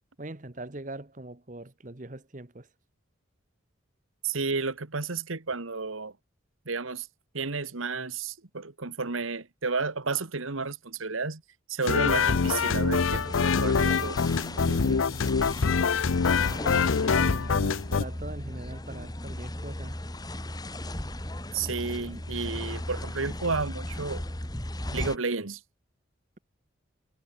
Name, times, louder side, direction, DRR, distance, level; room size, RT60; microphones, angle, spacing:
voice 1, 0.2-2.7 14.6-15.1 16.6-20.0, right 2 dB, 40° right, 1.2 m, -41 dB
voice 2, 4.2-6.1 6.6-7.1 7.3-11.4 11.7-14.2 21.5-24.2 24.9-25.6, right 4 dB, 90° right, 1.7 m, -32 dB
sound 1, 11.8-18.0, left 5 dB, 90° left, 0.6 m, -25 dB
sound 2, 12.1-25.2, left 1 dB, 20° left, 1.9 m, -36 dB
head